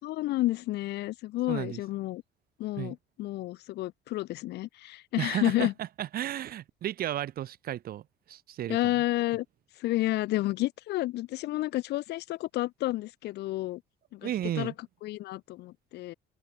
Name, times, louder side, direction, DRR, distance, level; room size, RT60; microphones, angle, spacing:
voice 1, 0.0-2.2 2.6-5.7 8.7-9.4 9.8-13.8 14.1-14.3 14.6-14.7 15.0-16.1, left 17 dB, 80° left, 4.8 m, -30 dB
voice 2, 1.5-1.8 2.8-2.9 5.2-8.9 14.2-14.7, right 12 dB, 60° right, 4.4 m, -34 dB
open air
cardioid pair, 110°, 17 cm